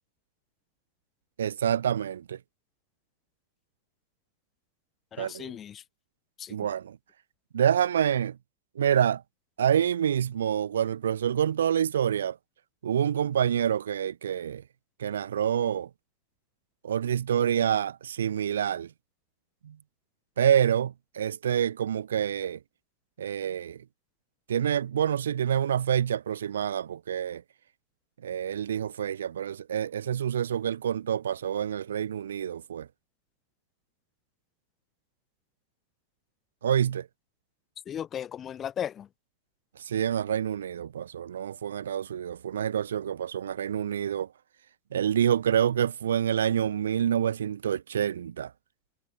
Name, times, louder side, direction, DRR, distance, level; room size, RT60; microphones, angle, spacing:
voice 1, 1.4-2.4 5.2-5.5 6.5-7.0 7.5-8.4 8.8-9.2 9.6-12.4 12.8-14.6 15.0-15.9 16.8-18.9 19.6-19.8 20.4-22.6 23.2-23.8 24.5-27.4 28.2-32.9 36.6-37.1 39.9-44.3 44.9-48.5, right 9 dB, 65° right, 0.4 m, -27 dB
voice 2, 5.1-5.8 6.4-6.7 37.9-39.1, left 9 dB, 25° left, 1.3 m, -36 dB
figure-of-eight pair, 90°, 0 cm